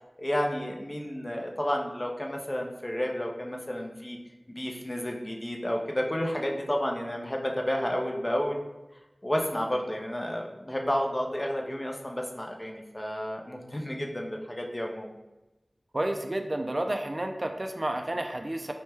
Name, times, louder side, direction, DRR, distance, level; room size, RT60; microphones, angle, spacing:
voice 1, 0.2-4.2 4.5-8.6 9.2-15.1, equal, 30° left, 1 dB, 0.5 m, -31 dB
voice 2, 15.9-18.7, right 1 dB, 45° right, 5 dB, 0.3 m, -31 dB
4.3 x 2.2 x 3.2 m, 1.0 s
wide cardioid pair, 40°, 0 cm